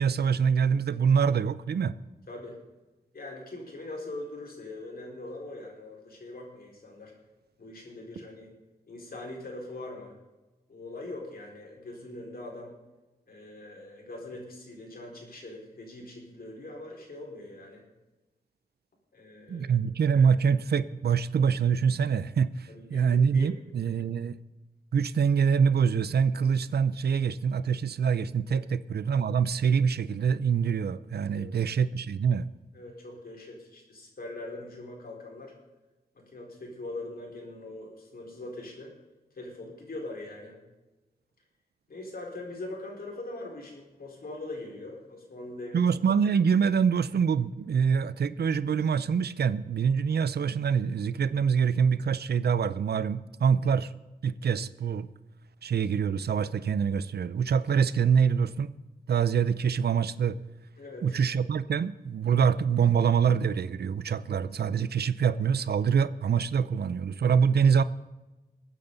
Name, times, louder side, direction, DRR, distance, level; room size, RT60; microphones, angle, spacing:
voice 1, 0.0-2.0 19.5-24.4 24.9-32.5 45.7-53.9 54.2-55.1 55.6-58.7 59.1-60.4 61.0-67.8, right 6 dB, 85° right, 16 dB, 0.6 m, -25 dB
voice 2, 2.3-2.6 3.1-7.1 7.6-8.6 8.9-10.2 10.7-12.8 13.3-17.8 19.1-19.7 22.7-23.6 28.5-28.6 31.3-31.5 32.7-35.5 36.1-38.9 39.3-40.6 41.9-45.9 60.8-61.2, left 2 dB, 70° left, -1 dB, 4.5 m, -42 dB
22.0 x 9.2 x 4.0 m, 1.1 s
wide cardioid pair, 105°, 16 cm